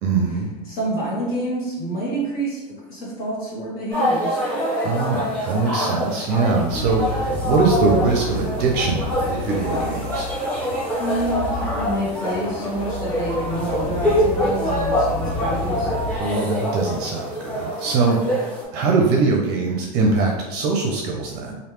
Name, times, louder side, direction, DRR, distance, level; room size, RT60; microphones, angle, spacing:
voice 1, 0.0-0.5 4.8-10.3 16.2-21.6, right 4 dB, 50° right, 0 dB, 0.6 m, -22 dB
voice 2, 0.6-4.4 11.0-15.9, right 1 dB, 45° left, -7 dB, 1.4 m, -28 dB
sound 1, 3.9-18.7, equal, 10° left, 1.4 m, -25 dB
sound 2, 6.7-16.2, left 2 dB, 30° left, 0.6 m, -31 dB
3.1 x 2.6 x 3.0 m, 1.1 s
hypercardioid pair, 105°, 21 cm